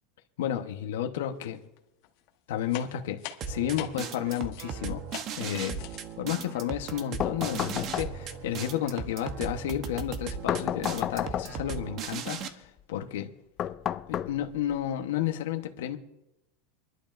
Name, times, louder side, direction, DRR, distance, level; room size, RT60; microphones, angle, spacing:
voice 1, 0.4-1.6 2.5-5.0 5.4-5.8 6.2-13.3 14.1-16.0, left 11 dB, 90° left, 1.0 m, -32 dB
sound 1, 1.4-1.8 2.0-4.7 5.1-5.4 5.7-6.2, left 12 dB, 55° left, 1.2 m, -43 dB
sound 2, 3.4-12.5, right 6 dB, 35° right, 0.9 m, -37 dB
sound 3, 7.2-8.5 10.5-11.8 13.6-14.8, left 10 dB, 30° left, 0.3 m, -32 dB
27.0 x 11.5 x 2.6 m
supercardioid pair, 165°, 0 cm